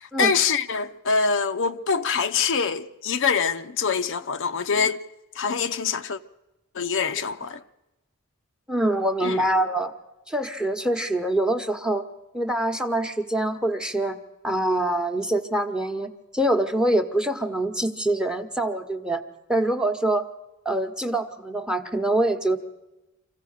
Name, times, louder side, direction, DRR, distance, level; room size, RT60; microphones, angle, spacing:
voice 1, 0.0-5.0 5.4-6.2 6.7-7.6 9.2-9.4, left 5 dB, 60° left, 0.7 m, -24 dB
voice 2, 8.7-9.9 10.3-12.1 12.3-14.2 14.4-19.2 19.5-20.3 20.6-22.6, right 1 dB, 5° right, 1.1 m, -24 dB
25.5 x 16.0 x 6.5 m
head